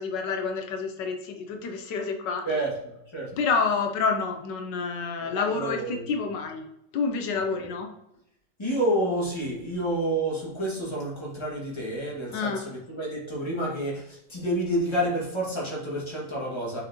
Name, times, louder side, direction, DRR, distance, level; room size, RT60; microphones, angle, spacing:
voice 1, 0.0-2.7 3.3-6.6 6.9-7.9 12.3-12.7, left 5 dB, 85° left, 4 dB, 1.5 m, -28 dB
voice 2, 5.3-6.0 7.6-7.7 8.6-16.8, right 1 dB, 15° left, -5 dB, 2.0 m, -29 dB
5.8 x 5.7 x 3.0 m, 0.82 s
omnidirectional pair, 1.9 m